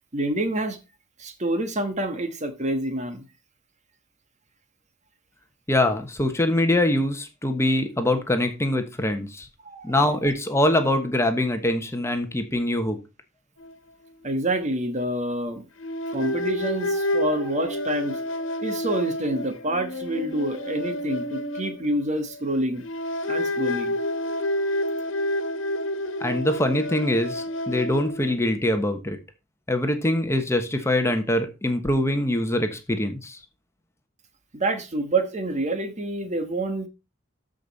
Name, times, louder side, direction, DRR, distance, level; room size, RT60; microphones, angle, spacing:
voice 1, 0.1-0.8 1.2-3.3 9.6-10.2 14.2-15.6 16.1-18.2 18.6-22.8 23.3-24.0 34.5-36.9, right 1 dB, 40° right, 1.4 m, -27 dB
voice 2, 5.7-9.5 9.8-13.0 26.2-29.2 29.7-33.4, left 1 dB, 15° left, 1.2 m, -23 dB
sound 1, 13.6-13.7 14.1-14.2 15.8-22.4 22.8-28.4, left 1 dB, 80° left, 1.4 m, -29 dB
13.5 x 5.3 x 4.1 m
head